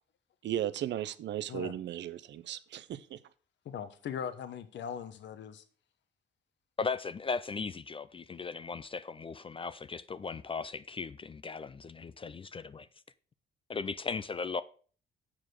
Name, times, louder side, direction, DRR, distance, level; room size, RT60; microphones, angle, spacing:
voice 1, 0.4-3.2, right 11 dB, 65° right, 0.6 m, -36 dB
voice 2, 3.6-5.6, left 8 dB, 65° left, 1.0 m, -40 dB
voice 3, 6.8-12.9 13.7-14.6, left 4 dB, 25° left, 0.4 m, -37 dB
7.3 x 4.9 x 6.1 m
cardioid pair, 90°, 20 cm